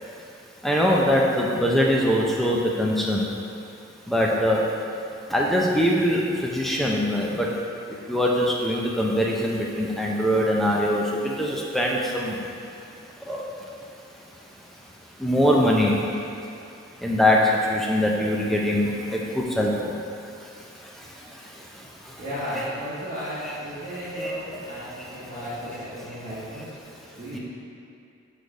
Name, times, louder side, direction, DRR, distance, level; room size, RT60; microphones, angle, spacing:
voice 1, 0.6-3.3 4.1-4.6 5.3-7.5 7.9-12.4 13.2-13.4 14.8-14.9 15.2-16.0 17.0-19.9 20.4-22.2 22.5-22.6 23.4-23.5 24.2-24.3 25.0-25.2 27.3-27.4, equal, ahead, -3 dB, 0.5 m, -23 dB
voice 2, 22.2-26.7 27.1-27.4, equal, 45° right, -13 dB, 1.3 m, -34 dB
6.3 x 3.4 x 4.8 m, 2.6 s
head